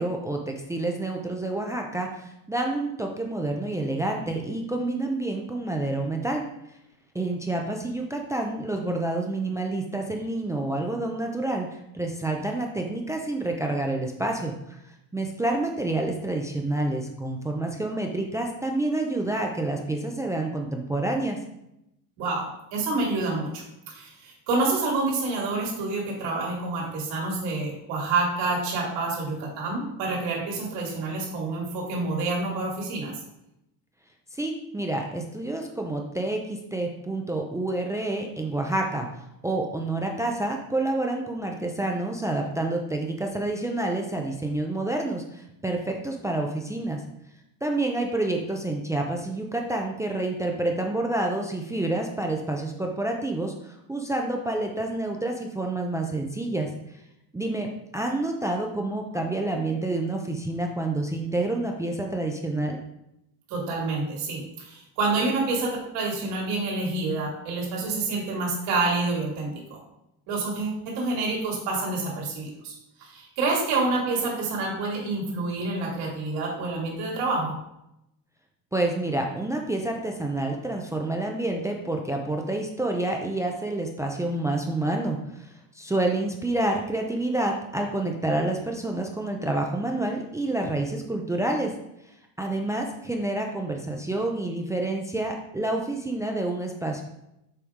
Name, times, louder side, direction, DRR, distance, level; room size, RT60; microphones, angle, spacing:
voice 1, 0.0-6.4 7.1-21.4 34.3-39.1 39.4-47.0 47.6-56.7 57.3-62.8 78.7-91.7 92.4-97.0, right 2 dB, 10° right, 1 dB, 0.4 m, -28 dB
voice 2, 22.2-33.1 63.5-69.8 70.3-72.7 73.0-77.5, right 3 dB, 85° right, -2 dB, 2.6 m, -28 dB
7.0 x 4.8 x 3.6 m, 0.83 s
cardioid pair, 160°, 40 cm